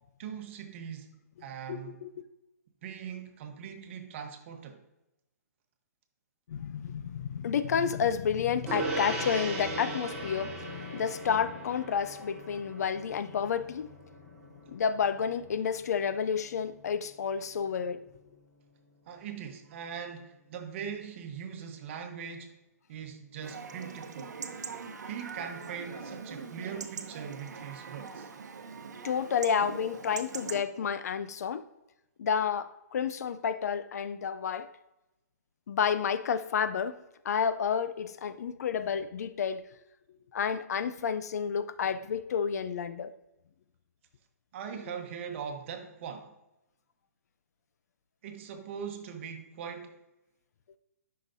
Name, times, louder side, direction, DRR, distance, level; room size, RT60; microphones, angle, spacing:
voice 1, 0.2-2.0 2.8-4.8 19.1-22.6 22.9-24.4 25.1-28.3 44.5-46.3 48.2-50.0, right 7 dB, 45° right, 1.1 m, -41 dB
voice 2, 1.7-2.1 6.5-13.9 14.7-18.0 29.0-31.7 32.2-34.7 35.7-39.6 40.3-43.1, left 7 dB, 65° left, 0.5 m, -30 dB
Gong, 8.7-18.4, right 3 dB, 10° right, 2.8 m, -40 dB
Chatter / Livestock farm animals working animals / Chirp tweet, 23.4-30.6, right 5 dB, 80° right, 0.8 m, -42 dB
11.0 x 5.8 x 2.7 m
hypercardioid pair, 150°, 9 cm